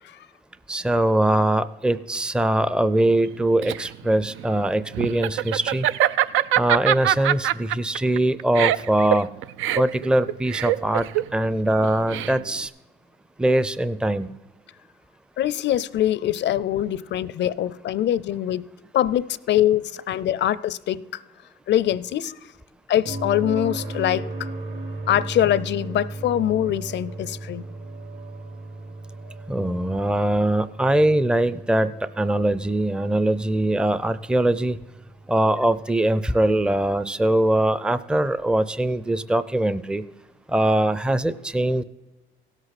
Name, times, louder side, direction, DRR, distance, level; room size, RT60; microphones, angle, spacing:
voice 1, 0.7-5.9 6.6-9.3 9.8-11.1 11.3-12.7 13.4-14.3 29.5-34.8 35.3-40.0 40.5-41.8, right 1 dB, 5° right, 0.5 m, -22 dB
Laughter, 3.2-12.7, right 12 dB, 80° right, 0.4 m, -24 dB
voice 2, 15.4-18.7 18.9-21.1 21.7-22.3 22.9-24.5 25.1-27.7, left 11 dB, 65° left, 0.5 m, -23 dB
sound 1, 23.1-36.9 39.1-39.2, right 2 dB, 65° right, 2.7 m, -36 dB
17.0 x 8.0 x 4.1 m
cardioid pair, 90°, 20 cm